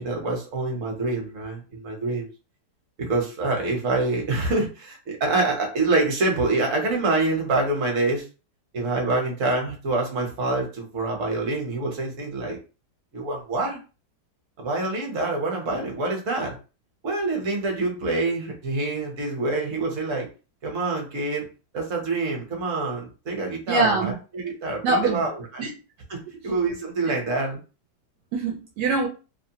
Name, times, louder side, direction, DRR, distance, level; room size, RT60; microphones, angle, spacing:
voice 1, 0.0-2.3 3.0-8.2 8.7-12.6 13.1-13.8 14.6-16.6 17.0-20.3 20.6-21.5 21.7-25.7 26.1-27.6, right 2 dB, 55° right, 1.1 m, -26 dB
voice 2, 23.7-24.2 24.8-25.2 25.6-25.7 28.3-29.1, right 3 dB, 75° right, 1.1 m, -23 dB
2.9 x 2.0 x 2.8 m
omnidirectional pair, 1.8 m